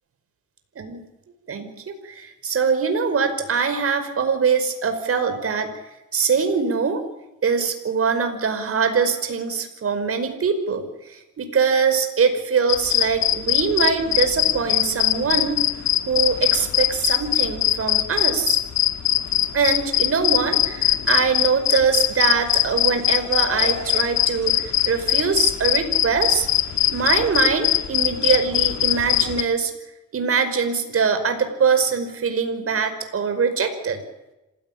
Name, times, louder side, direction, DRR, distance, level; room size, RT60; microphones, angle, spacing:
voice 1, 0.8-1.1 1.5-5.7 6.1-7.0 7.4-10.9 11.4-15.6 16.1-18.6 19.5-26.5 26.9-29.7 30.1-34.0, right 5 dB, 50° right, 8 dB, 5.3 m, -22 dB
sound 1, 12.7-29.4, left 13 dB, 65° left, 2.0 m, -21 dB
27.0 x 17.0 x 8.8 m, 1.0 s
cardioid pair, 90°, 30 cm